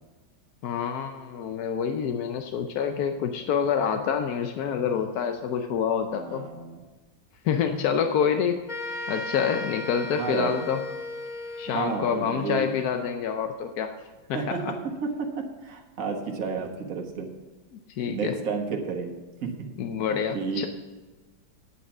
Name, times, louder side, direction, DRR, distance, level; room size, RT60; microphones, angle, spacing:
voice 1, 0.6-6.5 7.4-8.7 9.1-10.8 11.6-13.9 14.3-14.7 18.0-18.4 19.8-20.7, left 7 dB, 65° left, 6 dB, 1.0 m, -27 dB
voice 2, 6.1-6.8 10.2-10.6 11.7-12.7 14.3-17.3 18.1-19.6 20.3-20.7, right 5 dB, 45° right, 1 dB, 1.6 m, -31 dB
sound 1, 8.7-12.3, left 2 dB, 30° left, 0.8 m, -36 dB
9.2 x 8.9 x 6.0 m, 1.3 s
omnidirectional pair, 2.1 m